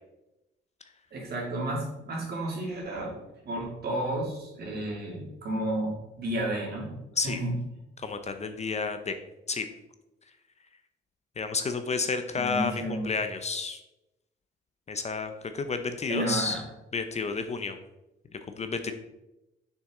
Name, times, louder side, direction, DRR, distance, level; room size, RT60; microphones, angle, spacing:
voice 1, 1.1-3.1 3.4-6.9 7.2-7.5 12.3-13.1 16.1-16.6, right 1 dB, 55° right, -2 dB, 2.7 m, -32 dB
voice 2, 8.0-9.2 9.5-9.7 11.4-13.8 14.9-16.6 16.9-17.8 18.6-18.9, left 4 dB, 35° left, 8 dB, 0.7 m, -31 dB
6.6 x 5.7 x 3.8 m, 0.95 s
cardioid pair, 90°, 20 cm